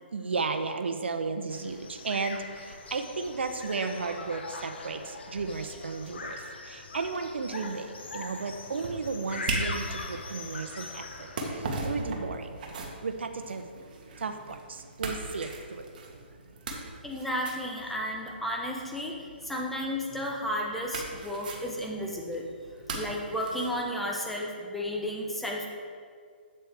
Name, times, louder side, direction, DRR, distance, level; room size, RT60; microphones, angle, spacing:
voice 1, 0.1-12.6 13.0-13.7 14.2-15.9 16.1-16.2, right 4 dB, 80° right, 7 dB, 0.8 m, -34 dB
sound 1, 1.5-11.5, left 3 dB, 75° left, 1.1 m, -41 dB
sound 2, 8.0-23.8, right 3 dB, 50° right, 1.4 m, -40 dB
voice 2, 17.0-19.1 19.4-22.4 22.9-25.7, equal, ahead, -1 dB, 0.9 m, -33 dB
8.3 x 7.6 x 3.4 m, 2.1 s
hypercardioid pair, 150°, 6 cm